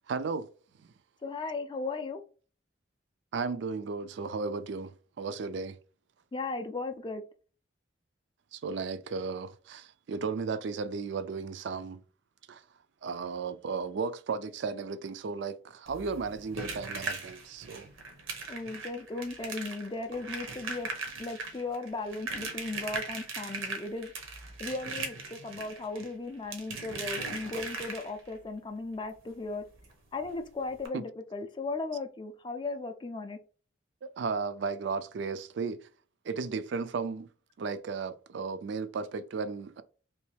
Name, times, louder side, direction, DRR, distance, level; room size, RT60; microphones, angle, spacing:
voice 1, 0.1-0.5 0.8-0.9 3.3-5.8 8.5-12.0 12.5-12.6 13.0-17.9 30.9-31.0 34.0-35.8 36.2-37.3 37.6-39.8, right 4 dB, 60° right, 0.3 m, -35 dB
voice 2, 1.2-2.2 6.3-7.2 18.5-20.9 21.2-24.1 24.6-29.6 30.1-33.4, left 3 dB, 25° left, 0.3 m, -36 dB
sound 1, 15.9-28.4 29.8-29.9 30.2-30.3 30.8-30.9, right 3 dB, 80° right, 0.9 m, -39 dB
3.2 x 3.0 x 3.2 m
head